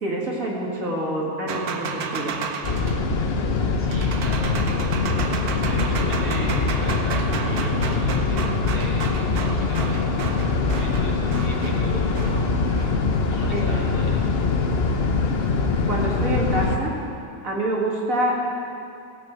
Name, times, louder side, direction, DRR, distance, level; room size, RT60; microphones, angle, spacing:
voice 1, 0.0-2.4 13.5-13.9 15.9-16.9 17.4-18.5, right 1 dB, 60° right, -3 dB, 2.4 m, -26 dB
sound 1, 1.5-13.1, right 5 dB, 75° right, 1.3 m, -33 dB
sound 2, 2.6-16.8, left 4 dB, 45° left, 1.0 m, -23 dB
voice 2, 3.8-4.6 5.7-10.0 10.6-12.5 13.3-14.2, right 1 dB, 10° left, -6 dB, 2.7 m, -37 dB
18.5 x 6.6 x 7.9 m, 2.6 s
omnidirectional pair, 1.6 m